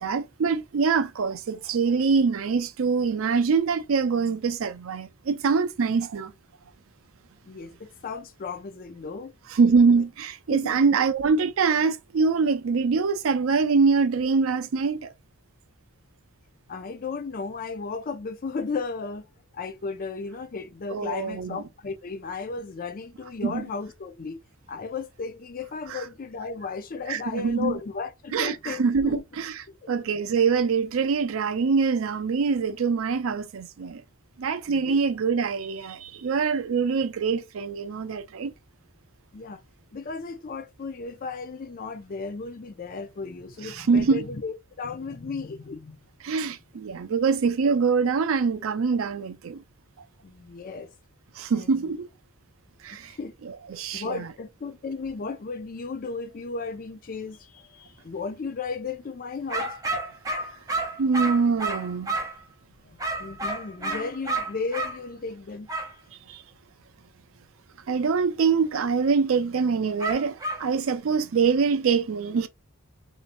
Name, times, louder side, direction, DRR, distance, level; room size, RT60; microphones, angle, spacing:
voice 1, 0.0-6.3 9.5-15.1 20.9-21.6 23.4-23.6 25.9-26.0 27.1-27.8 28.3-29.6 29.9-34.0 34.4-38.5 43.6-44.2 46.2-49.6 51.4-52.1 52.8-53.1 53.4-54.3 61.0-62.2 66.3-66.4 67.9-72.5, right 5 dB, 80° right, 0.4 m, -24 dB
voice 2, 7.5-9.3 10.5-11.0 16.7-19.2 19.5-24.4 24.7-29.2 29.7-29.8 34.7-35.0 39.3-39.6 39.9-46.0 50.2-50.9 51.5-51.8 53.1-53.3 53.9-59.8 62.9-65.7, left 4 dB, 45° left, 0.5 m, -35 dB
sound 1, 59.5-62.4 63.0-65.0 65.7-65.9 70.0-70.7, right 2 dB, 15° right, 0.8 m, -30 dB
3.1 x 2.7 x 2.5 m
head